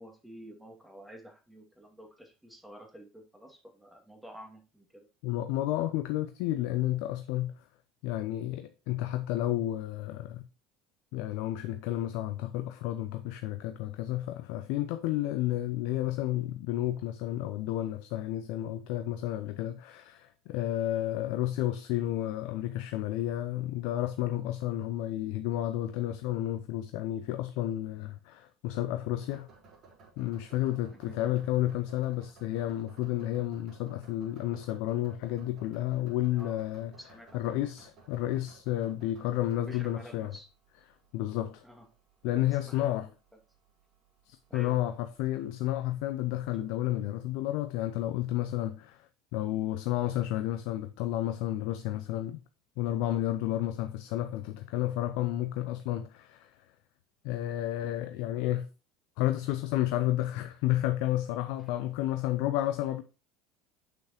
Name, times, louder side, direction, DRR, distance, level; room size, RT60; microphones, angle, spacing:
voice 1, 0.0-5.1 30.9-31.2 36.3-37.5 39.7-40.5 41.6-41.9 42.5-43.1 44.5-44.8 61.6-61.7, equal, 5° right, 2.2 m, -50 dB
voice 2, 5.2-7.6 8.0-10.5 11.1-29.5 30.2-36.9 37.3-40.3 41.1-41.6 42.2-43.1 44.3-52.4 52.8-56.5 57.2-58.7 59.2-63.0, left 14 dB, 65° left, 0.5 m, -31 dB
sound 1, 29.2-46.7, right 3 dB, 50° right, 3.9 m, -59 dB
7.0 x 6.1 x 2.9 m
hypercardioid pair, 70°, 0 cm